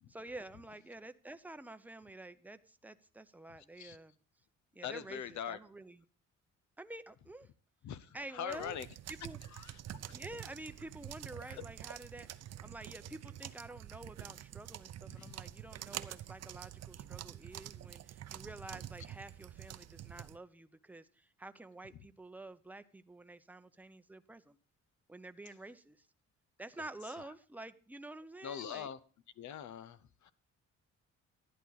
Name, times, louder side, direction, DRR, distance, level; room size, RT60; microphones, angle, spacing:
voice 1, 0.1-4.2 4.7-6.0 6.8-7.5 8.1-8.8 9.1-9.4 10.0-24.6 25.1-26.1 26.6-28.9, right 2 dB, 5° right, 10 dB, 0.7 m, -49 dB
voice 2, 4.8-5.6 7.8-8.9 9.5-9.7 11.5-11.6 15.2-15.3 27.2-27.3 28.4-29.0 29.4-30.3, left 8 dB, 70° left, 16 dB, 0.8 m, -42 dB
sound 1, 8.5-20.4, right 11 dB, 60° right, 0.6 m, -47 dB
11.0 x 11.0 x 4.0 m, 0.40 s
cardioid pair, 90°, 30 cm